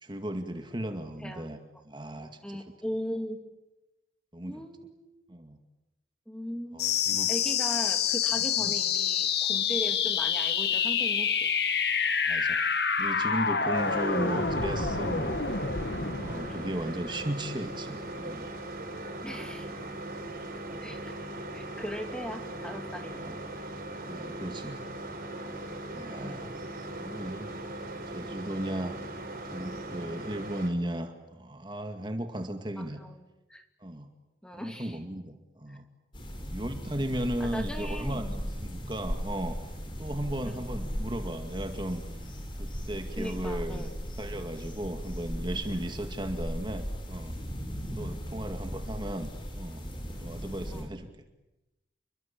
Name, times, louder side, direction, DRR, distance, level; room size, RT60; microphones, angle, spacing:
voice 1, 0.0-1.6 1.8-2.6 4.3-4.6 5.3-5.6 6.7-7.3 8.6-8.7 12.3-12.6 13.0-15.4 16.2-18.5 23.0-23.4 24.0-24.8 25.9-26.6 27.0-27.5 28.1-29.0 29.5-33.0 33.8-34.1 34.5-35.9 36.5-39.7 40.0-42.0 42.6-43.9 44.2-47.4 47.9-49.8 50.2-51.1, right 1 dB, 25° right, 6 dB, 2.1 m, -36 dB
voice 2, 2.2-3.4 4.4-5.1 6.3-7.0 7.3-11.5 16.5-16.7 19.2-19.7 20.8-21.1 21.5-23.2 26.2-26.6 33.0-33.2 33.5-33.6 34.4-35.0 35.7-35.8 37.4-38.2 40.4-40.6 43.2-43.9 48.1-48.3 50.7-50.9, equal, 5° left, 5 dB, 2.6 m, -39 dB
sound 1, 6.8-17.8, left 6 dB, 65° left, 2.1 m, -28 dB
sound 2, 13.7-30.7, right 1 dB, 50° right, 6.1 m, -39 dB
sound 3, 36.1-50.8, equal, 25° left, 5.5 m, -37 dB
29.0 x 23.5 x 8.6 m, 0.97 s
head